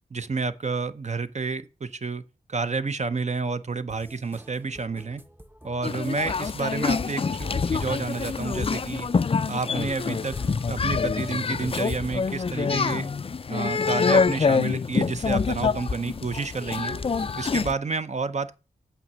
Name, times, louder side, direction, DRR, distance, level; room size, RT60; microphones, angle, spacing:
voice 1, 0.1-2.2 2.5-5.2 5.6-9.1 9.5-13.1 13.5-17.0 17.4-18.6, right 4 dB, 45° right, 0.8 m, -30 dB
sound 1, 3.9-17.6, right 1 dB, 10° right, 0.8 m, -50 dB
sound 2, 5.8-17.7, left 5 dB, 35° left, 0.4 m, -26 dB
Toilet flush, 5.8-10.9, right 3 dB, 85° right, 2.2 m, -56 dB
7.5 x 5.7 x 6.1 m
cardioid pair, 50°, 16 cm